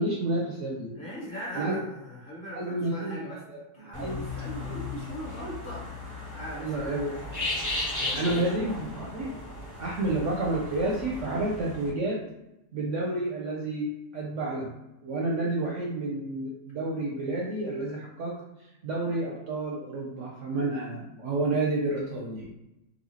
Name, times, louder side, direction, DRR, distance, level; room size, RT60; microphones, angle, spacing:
voice 1, 0.0-1.0 1.5-1.8 2.5-3.6 3.9-4.3 6.5-7.2 8.1-9.3 9.8-12.2 12.7-14.7 15.0-22.5, right 2 dB, 65° right, -3 dB, 0.8 m, -30 dB
voice 2, 0.9-3.4 3.7-5.9 6.3-6.9 7.9-8.5, equal, 35° left, -7 dB, 1.2 m, -40 dB
sound 1, 3.9-11.9, left 2 dB, 15° left, 0.6 m, -36 dB
4.2 x 2.5 x 2.7 m, 0.92 s
omnidirectional pair, 1.7 m